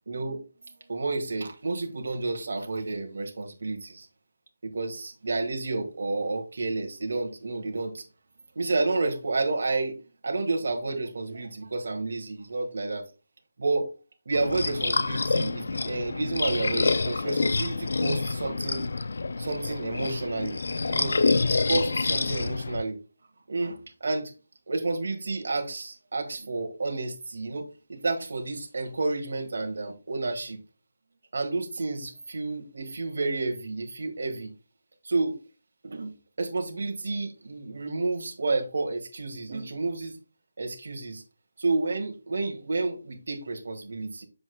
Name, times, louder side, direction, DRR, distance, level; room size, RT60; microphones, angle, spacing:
voice 1, 0.1-0.4 0.9-4.1 4.6-8.0 8.5-10.0 10.2-13.0 13.6-13.9 14.2-18.9 19.4-20.6 20.9-21.2 21.4-23.0 23.5-24.3 24.7-30.6 31.3-34.5 35.0-35.4 35.8-40.2 40.6-41.2 41.6-44.2, right 3 dB, 60° right, 1.6 m, -30 dB
sound 1, 14.3-22.8, left 3 dB, 65° left, 0.4 m, -27 dB
7.2 x 6.5 x 2.2 m
figure-of-eight pair, 170°, 0 cm